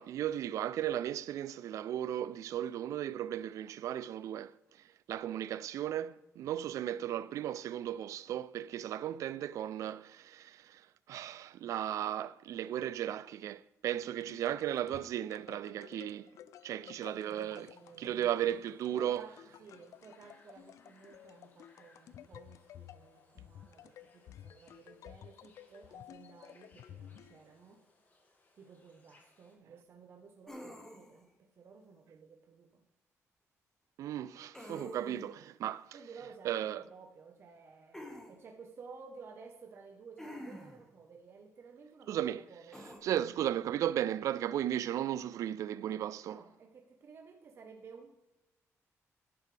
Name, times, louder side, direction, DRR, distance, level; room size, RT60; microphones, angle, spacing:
voice 1, 0.0-4.5 5.1-16.3 16.6-17.7 18.0-19.3 34.0-36.0 36.4-36.8 42.1-42.4 43.0-46.4, right 11 dB, 75° right, 0.4 m, -35 dB
sound 1, 13.9-27.8, left 10 dB, 75° left, 0.4 m, -54 dB
voice 2, 16.8-18.1 18.9-27.8 28.5-32.9 35.9-42.9 46.2-48.4, right 5 dB, 50° right, 1.0 m, -55 dB
sound 2, 17.0-29.6, left 2 dB, 35° left, 2.0 m, -68 dB
sound 3, 30.5-31.2 34.5-35.3 37.9-38.3 40.2-40.8 42.7-43.0, equal, 10° left, 1.6 m, -47 dB
11.0 x 10.0 x 3.3 m
cardioid pair, 140°, 6 cm